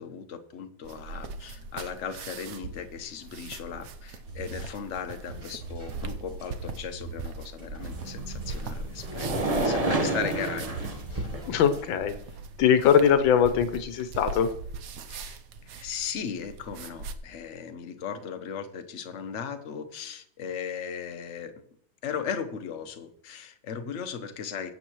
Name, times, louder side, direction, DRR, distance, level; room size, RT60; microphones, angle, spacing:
voice 1, 0.0-11.3 15.1-21.5 22.0-24.7, left 7 dB, 45° left, 7 dB, 1.1 m, -37 dB
sound 1, 0.8-17.1, right 4 dB, 60° right, 1.0 m, -41 dB
sound 2, 4.2-12.0, right 3 dB, 45° right, 6.8 m, -43 dB
sound 3, 7.8-11.5, right 2 dB, 25° right, 0.8 m, -30 dB
voice 2, 11.5-12.1 12.6-14.5, left 8 dB, 90° left, 9 dB, 1.5 m, -21 dB
22.0 x 8.1 x 3.1 m, 0.68 s
omnidirectional pair, 2.0 m